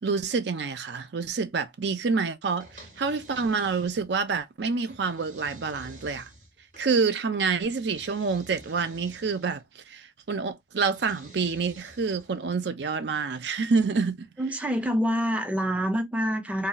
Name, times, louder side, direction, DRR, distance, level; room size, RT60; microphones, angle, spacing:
voice 1, 0.0-6.3 6.8-14.3, right 4 dB, 70° right, 0.5 m, -27 dB
sound 1, 2.6-4.3 4.9-6.9 7.7-9.6 10.8-12.4, right 1 dB, 45° right, 1.4 m, -50 dB
voice 2, 14.4-16.7, equal, 10° right, 0.4 m, -26 dB
2.7 x 2.2 x 3.8 m
head